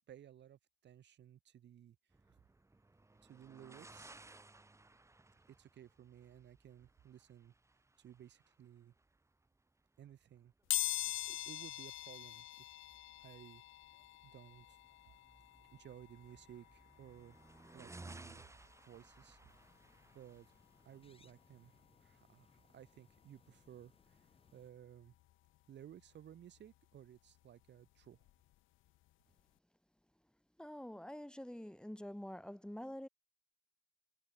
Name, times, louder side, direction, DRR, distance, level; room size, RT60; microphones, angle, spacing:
voice 1, 0.1-2.0 3.2-4.2 5.6-8.9 10.0-10.5 11.1-12.6 13.2-13.6 14.2-14.8 15.7-17.4 17.7-19.4 20.1-20.5 20.8-25.1 25.7-28.3, right 10 dB, 65° right, 1.5 m, -57 dB
sound 1, 2.1-21.8, right 2 dB, 15° right, 1.5 m, -60 dB
sound 2, 10.7-21.4 21.8-21.9 23.1-23.2 23.5-25.6 25.9-28.5 28.9-29.1 29.4-29.5, left 17 dB, 85° left, 0.6 m, -45 dB
sound 3, 19.5-24.7, left 4 dB, 30° left, 4.5 m, -70 dB
voice 2, 30.6-33.1, equal, 5° left, 2.2 m, -47 dB
cardioid pair, 90°, 20 cm